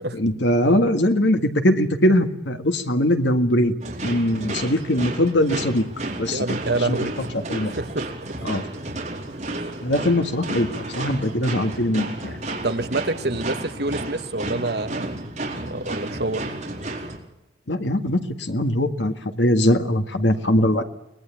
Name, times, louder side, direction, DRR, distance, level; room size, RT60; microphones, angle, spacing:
voice 1, 0.2-3.8 4.0-5.9 6.2-6.4 6.9-7.0 7.3-7.7 8.4-8.6 9.8-12.4 17.7-20.8, left 1 dB, 90° left, 7 dB, 1.9 m, -21 dB
sound 1, 3.8-17.2, right 2 dB, 40° right, 4.5 m, -32 dB
voice 2, 6.3-7.1 7.6-8.1 12.6-15.3 15.6-16.5, right 2 dB, 65° right, 9 dB, 1.4 m, -27 dB
24.5 x 20.5 x 8.6 m, 0.83 s
head